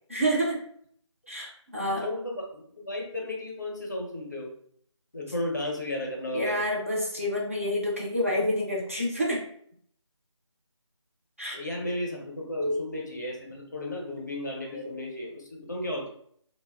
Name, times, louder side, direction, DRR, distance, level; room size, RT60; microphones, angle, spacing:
voice 1, 0.1-0.6 1.3-2.1 6.3-9.4 11.4-11.6 12.6-12.8, equal, 30° right, -4 dB, 0.4 m, -28 dB
voice 2, 2.0-4.5 5.1-6.6 11.5-16.1, left 1 dB, 40° left, 0 dB, 0.6 m, -34 dB
2.8 x 2.0 x 3.3 m, 0.64 s
figure-of-eight pair, 165°, 16 cm